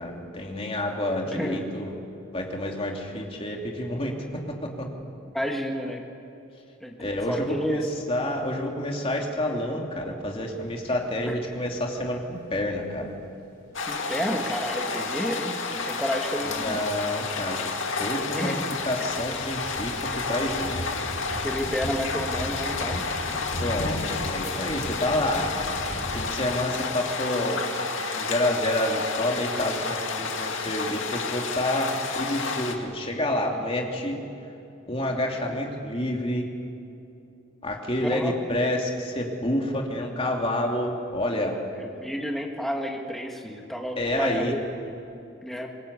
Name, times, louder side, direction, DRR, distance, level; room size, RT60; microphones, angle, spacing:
voice 1, 0.0-1.9 2.3-4.9 7.0-13.1 16.5-18.6 18.8-20.8 23.6-25.5 26.1-27.7 28.1-34.2 34.9-36.5 37.6-41.6 44.0-44.5, left 1 dB, 30° left, 1 dB, 3.0 m, -28 dB
voice 2, 1.3-1.6 5.3-6.1 6.8-7.8 11.3-11.4 13.9-16.8 18.3-18.6 21.4-23.1 38.0-38.3 41.8-44.6 45.4-45.7, equal, ahead, 1 dB, 1.8 m, -31 dB
sound 1, 10.6-11.3 11.9-12.0 12.3-12.4 14.7-14.8 16.6-16.7 17.1-26.3, equal, 55° left, 4.4 m, -37 dB
sound 2, 13.7-32.7, left 4 dB, 75° left, 2.2 m, -31 dB
26.0 x 21.5 x 8.4 m, 2.8 s
head